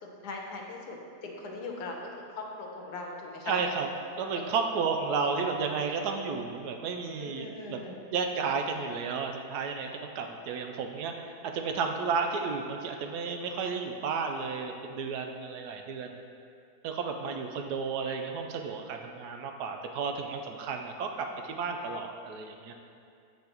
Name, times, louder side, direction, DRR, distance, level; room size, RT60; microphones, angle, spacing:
voice 1, 0.0-3.6 4.3-4.4 7.2-8.0, left 3 dB, 85° left, 0 dB, 1.3 m, -40 dB
voice 2, 3.5-3.9 4.2-7.8 8.1-16.2 16.8-22.7, right 5 dB, 85° right, 4 dB, 1.1 m, -32 dB
7.6 x 5.8 x 2.9 m, 2.5 s
omnidirectional pair, 1.7 m